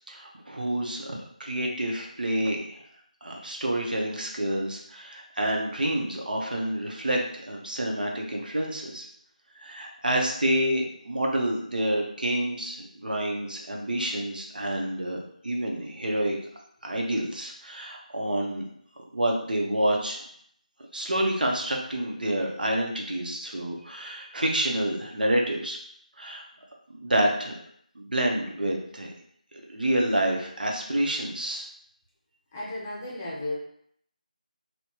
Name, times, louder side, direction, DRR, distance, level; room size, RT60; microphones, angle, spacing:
voice 1, 0.1-2.8 3.2-7.2 7.5-9.0 9.6-16.4 16.8-18.6 19.1-20.3 20.9-25.8 26.2-26.4 27.0-27.5 27.9-29.1 29.7-31.7, right 1 dB, 80° right, 0 dB, 0.9 m, -28 dB
voice 2, 32.5-33.5, left 2 dB, 15° left, -5 dB, 0.6 m, -34 dB
4.2 x 2.3 x 2.8 m, 0.67 s
figure-of-eight pair, 170°, 5 cm